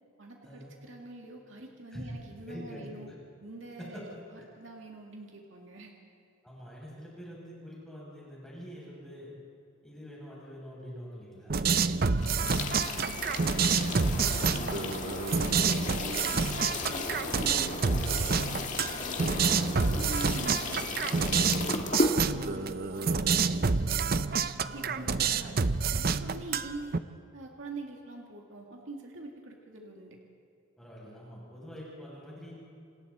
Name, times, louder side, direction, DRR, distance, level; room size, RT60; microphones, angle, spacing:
voice 1, 0.2-3.1 3.4-5.9 12.1-13.7 14.1-15.2 15.5-20.8 21.1-21.7 22.1-27.0 27.3-30.2, right 2 dB, 70° right, 0 dB, 2.2 m, -45 dB
voice 2, 2.4-3.1 3.8-4.0 4.4-4.5 6.4-9.3 9.8-11.6 24.6-25.3 30.8-32.5, equal, 5° left, -6 dB, 7.7 m, -45 dB
sound 1, 11.5-27.0, right 5 dB, 50° right, 0.6 m, -28 dB
sound 2, 12.2-22.1, left 2 dB, 40° left, 1.9 m, -35 dB
28.5 x 25.5 x 4.3 m, 2.5 s
head